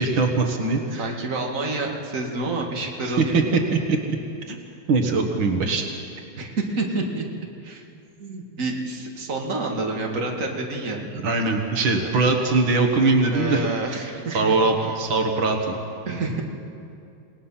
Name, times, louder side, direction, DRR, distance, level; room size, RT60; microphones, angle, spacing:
voice 1, 0.0-1.2 3.0-3.2 3.5-4.0 4.5-4.6 4.9-5.9 11.1-13.6 14.3-15.8, right 3 dB, 85° right, 3 dB, 2.4 m, -21 dB
voice 2, 0.9-3.3 6.3-7.2 7.6-7.8 8.2-11.1 12.0-12.1 13.3-14.6 16.1-16.4, right 2 dB, 45° right, 0 dB, 2.5 m, -28 dB
28.5 x 19.0 x 5.8 m, 2.5 s
omnidirectional pair, 2.1 m